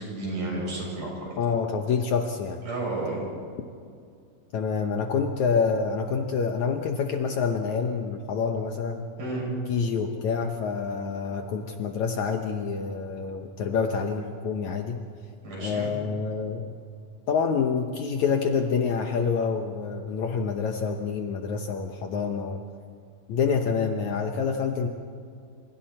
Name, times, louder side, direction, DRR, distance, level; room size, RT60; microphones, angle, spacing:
voice 1, 0.0-1.3 2.6-3.2 9.2-9.5 15.4-15.9, right 2 dB, 60° right, -3 dB, 8.4 m, -32 dB
voice 2, 1.4-2.6 4.5-9.1 9.7-15.0 15.6-16.7 17.3-22.6 23.3-24.9, left 5 dB, 65° left, 4 dB, 2.1 m, -27 dB
28.0 x 27.5 x 4.4 m, 2.2 s
omnidirectional pair, 4.2 m